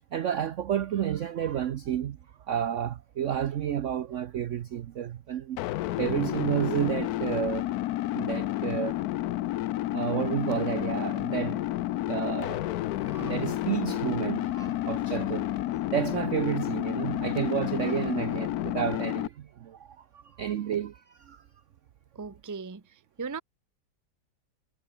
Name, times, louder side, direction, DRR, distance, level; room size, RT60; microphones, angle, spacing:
voice 1, 0.1-2.2 2.5-5.6 6.0-7.7 8.1-9.0 9.9-11.7 12.1-12.7 13.0-15.5 15.9-21.4, right 10 dB, 65° right, 0.7 m, -31 dB
sound 1, 5.6-19.3, left 15 dB, 70° left, 0.9 m, -30 dB
voice 2, 22.1-23.4, right 5 dB, 20° right, 0.5 m, -38 dB
omnidirectional pair, 2.0 m